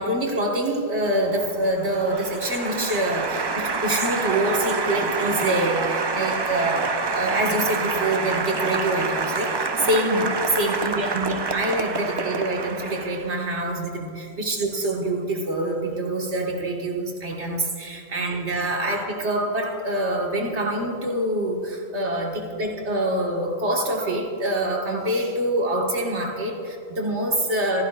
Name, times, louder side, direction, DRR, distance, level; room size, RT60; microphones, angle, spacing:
voice 1, 0.0-27.8, right 1 dB, 80° right, 0 dB, 2.0 m, -25 dB
Applause, 1.0-13.5, right 4 dB, 35° right, 0.4 m, -27 dB
22.0 x 15.0 x 2.5 m, 2.4 s
omnidirectional pair, 1.1 m